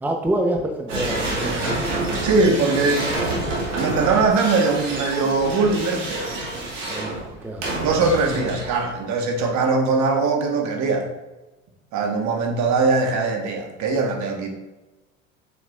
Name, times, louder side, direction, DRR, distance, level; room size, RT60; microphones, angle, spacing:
voice 1, 0.0-1.4 6.9-7.7, right 1 dB, 5° right, 3 dB, 0.8 m, -26 dB
sound 1, 0.9-9.0, right 2 dB, 85° right, 1.7 m, -28 dB
voice 2, 1.4-3.0 3.8-6.3 7.8-11.1 11.9-14.5, right 3 dB, 50° right, 3 dB, 1.4 m, -21 dB
7.2 x 6.0 x 2.4 m, 1.1 s
hypercardioid pair, 75°, 36 cm